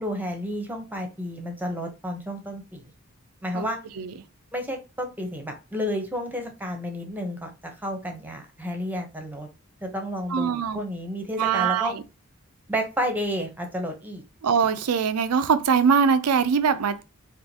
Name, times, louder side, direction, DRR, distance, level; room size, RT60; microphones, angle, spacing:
voice 1, 0.0-2.8 3.4-3.8 4.5-9.5 9.8-11.9 12.7-14.2, equal, 10° right, 0.8 m, -31 dB
voice 2, 10.3-10.8 11.4-12.0 14.4-17.0, right 6 dB, 90° right, 0.5 m, -22 dB
4.3 x 2.4 x 2.8 m
head